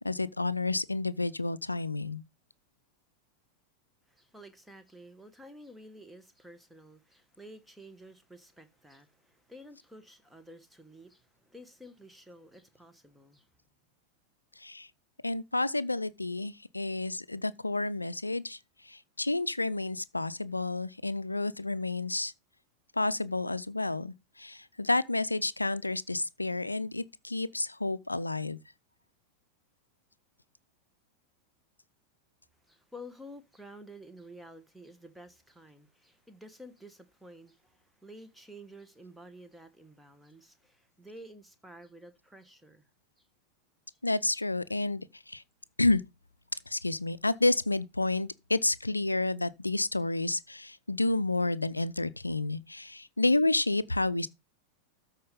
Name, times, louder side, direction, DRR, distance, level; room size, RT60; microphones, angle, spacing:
voice 1, 0.0-2.2 14.6-14.9 15.2-18.6 18.8-22.3 23.0-28.6 44.0-45.4 45.8-46.0 46.7-54.3, left 2 dB, 85° left, 0.5 m, -30 dB
voice 2, 4.1-13.5 32.6-42.9 43.2-43.3 43.9-44.0, equal, 5° right, 1.3 m, -51 dB
13.0 x 4.4 x 5.2 m
figure-of-eight pair, 90°, 0 cm